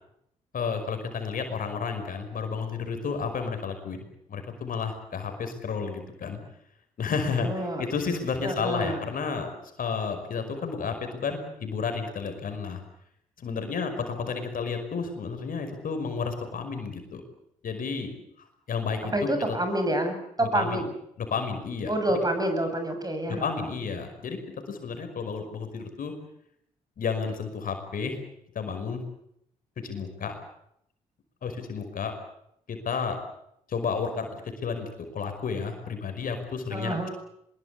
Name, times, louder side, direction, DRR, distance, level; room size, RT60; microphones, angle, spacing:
voice 1, 0.5-4.0 4.3-6.4 7.0-9.5 9.8-12.8 13.4-17.2 17.6-18.1 18.7-19.6 20.4-20.8 21.2-22.2 23.3-24.4 24.7-26.1 27.0-28.2 28.6-29.0 29.8-30.3 31.4-32.1 32.7-33.2 33.7-34.3 34.6-36.9, left 5 dB, 60° left, 6 dB, 5.4 m, -31 dB
voice 2, 7.4-7.8 8.4-9.0 19.1-20.9 21.9-23.6 36.7-37.1, right 1 dB, 25° right, 6 dB, 7.9 m, -28 dB
23.0 x 22.0 x 8.4 m, 0.75 s
hypercardioid pair, 45°, 16 cm